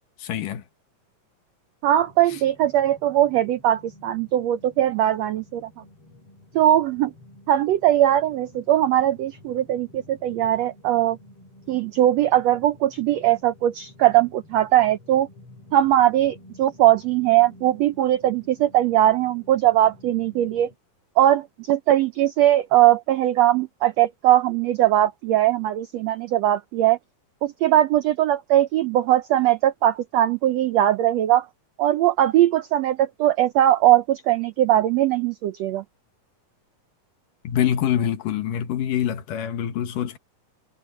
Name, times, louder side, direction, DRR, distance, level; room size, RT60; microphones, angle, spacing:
voice 1, 0.2-0.6 37.4-40.2, left 10 dB, 75° left, 2.9 m, -25 dB
voice 2, 1.8-5.7 6.5-7.1 7.5-11.2 11.7-15.3 15.7-20.7 21.2-27.0 27.4-31.5 31.8-35.8, right 13 dB, 85° right, 1.4 m, -20 dB
sound 1, 2.0-20.8, left 1 dB, 40° left, 4.5 m, -50 dB
omnidirectional pair, 3.9 m